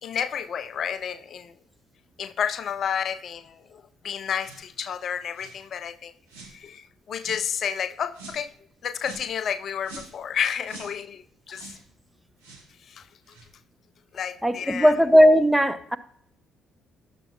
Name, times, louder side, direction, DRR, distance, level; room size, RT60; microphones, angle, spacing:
voice 1, 0.0-1.5 2.2-6.1 6.4-8.5 8.8-11.7 12.8-13.1 14.1-14.9, left 8 dB, 55° left, 12 dB, 0.3 m, -31 dB
sound 1, 4.4-4.7 5.3-5.6 6.3-6.6 7.2-7.5 8.1-8.4 9.0-9.3 9.8-10.2 10.6-11.0 11.5-11.8 12.4-12.7 13.3-13.5, right 3 dB, 85° right, 1.0 m, -45 dB
voice 2, 14.4-16.0, equal, 5° right, 13 dB, 0.6 m, -17 dB
9.8 x 7.0 x 2.7 m, 0.68 s
hypercardioid pair, 45°, 0 cm